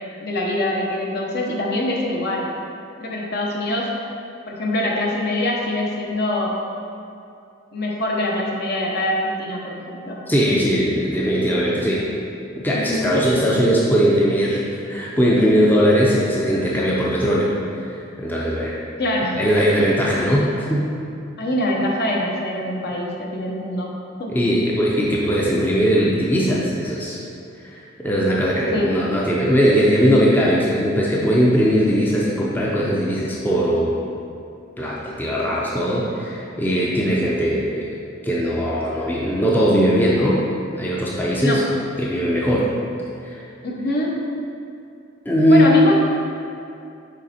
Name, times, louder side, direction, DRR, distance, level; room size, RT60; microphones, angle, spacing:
voice 1, 0.2-2.5 3.0-3.9 4.5-6.6 7.7-10.2 12.7-13.1 19.0-19.5 21.4-23.9 24.2-24.3 28.7-28.9 41.4-41.6 43.6-44.2 45.5-46.0, left 1 dB, 55° left, -2 dB, 0.9 m, -24 dB
voice 2, 10.3-12.1 12.6-14.6 14.9-17.5 18.2-18.8 19.4-20.9 24.3-27.2 27.6-33.9 34.8-37.9 38.2-40.4 40.7-41.6 42.0-42.7 43.2-43.4 45.3-45.7, equal, 10° left, -5 dB, 0.5 m, -19 dB
6.4 x 4.2 x 4.2 m, 2.6 s
head